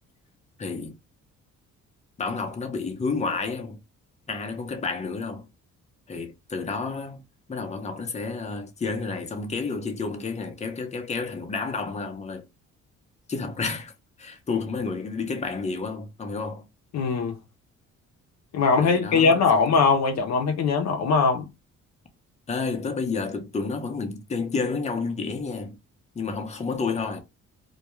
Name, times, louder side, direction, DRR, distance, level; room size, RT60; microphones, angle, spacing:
voice 1, 0.6-0.9 2.2-3.8 4.3-5.5 6.1-7.2 7.5-12.4 13.3-13.9 14.2-16.7 18.8-19.8 22.5-25.8 26.2-27.2, left 4 dB, 20° left, 0.7 m, -30 dB
voice 2, 16.9-17.4 18.5-21.5, left 5 dB, 60° left, 0.6 m, -21 dB
2.2 x 2.2 x 3.0 m
cardioid pair, 90°, 30 cm